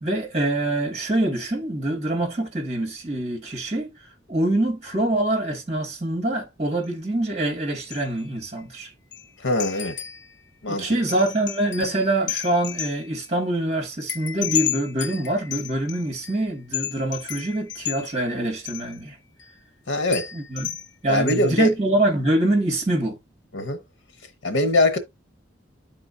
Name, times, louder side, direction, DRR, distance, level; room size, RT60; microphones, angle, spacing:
voice 1, 0.0-3.9 4.3-8.9 10.7-19.2 20.3-20.8 21.0-23.2, right 1 dB, 35° right, 1.9 m, -25 dB
sound 1, 6.8-6.9 7.9-8.3 8.6-8.7 9.1-9.3 9.6-10.3 11.1-13.3 14.1-16.4 16.7-18.3 18.6-19.0 19.4-19.5 20.1-20.9 21.3-21.6, left 11 dB, 65° left, 0.7 m, -32 dB
voice 2, 9.4-10.0 10.6-10.9 19.9-20.3 21.1-21.7 23.5-23.8 24.4-25.0, left 1 dB, 90° left, 1.0 m, -22 dB
10.5 x 3.9 x 2.6 m
head